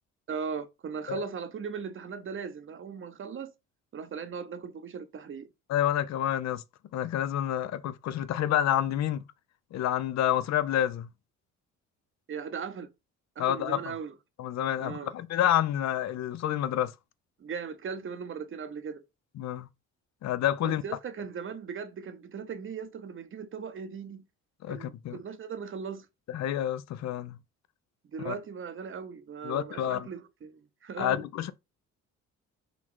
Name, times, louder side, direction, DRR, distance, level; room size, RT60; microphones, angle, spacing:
voice 1, 0.3-3.5 3.9-5.5 12.3-12.9 13.4-14.1 14.8-15.1 17.4-19.0 20.6-24.2 24.7-26.1 28.1-31.2, right 6 dB, 45° right, 0.7 m, -38 dB
voice 2, 5.7-6.6 6.9-9.2 9.7-11.1 13.4-13.9 14.4-16.9 19.4-19.7 20.2-20.8 24.6-25.2 26.3-27.4 28.2-28.3 29.4-30.1 31.0-31.5, left 11 dB, 60° left, 0.5 m, -28 dB
3.9 x 2.3 x 4.5 m
cardioid pair, 90°, 30 cm